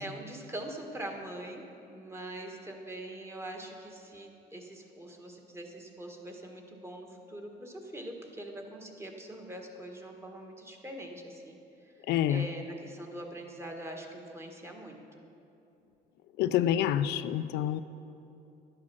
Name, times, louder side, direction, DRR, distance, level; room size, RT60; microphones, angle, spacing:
voice 1, 0.0-15.2, right 1 dB, 15° right, 2 dB, 1.5 m, -43 dB
voice 2, 12.1-12.5 16.4-17.8, left 11 dB, 80° left, 12 dB, 0.4 m, -27 dB
11.5 x 8.7 x 5.9 m, 2.8 s
cardioid pair, 110°, 17 cm